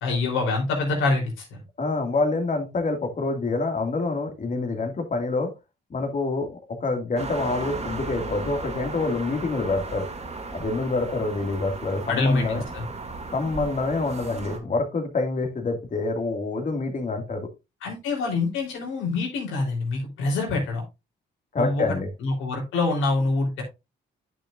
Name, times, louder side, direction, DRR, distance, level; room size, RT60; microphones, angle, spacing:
voice 1, 0.0-1.4 12.1-12.8 17.8-20.8 21.6-21.8 22.2-23.6, left 3 dB, 90° left, 0 dB, 3.7 m, -25 dB
voice 2, 1.8-5.5 5.9-10.1 10.5-12.6 13.3-17.5 21.5-22.1, left 3 dB, 40° left, 4 dB, 2.2 m, -26 dB
sound 1, 7.2-14.6, right 3 dB, 30° right, 2.1 m, -36 dB
10.5 x 6.4 x 2.5 m, 0.25 s
cardioid pair, 90°, 20 cm